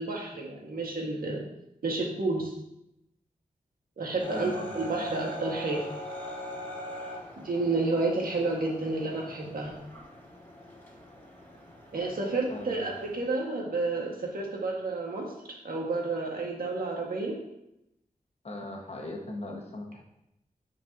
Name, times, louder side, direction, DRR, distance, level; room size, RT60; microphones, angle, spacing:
voice 1, 0.0-1.4 1.8-2.5 4.0-5.8 7.4-9.7 11.9-17.4, right 3 dB, 80° right, -1 dB, 1.7 m, -30 dB
sound 1, 4.2-13.3, left 1 dB, 15° left, 2.5 m, -42 dB
voice 2, 4.3-5.0 12.5-12.9 18.4-20.0, left 2 dB, 45° left, 0 dB, 1.4 m, -39 dB
9.5 x 5.1 x 2.8 m, 0.83 s
wide cardioid pair, 115°, 15 cm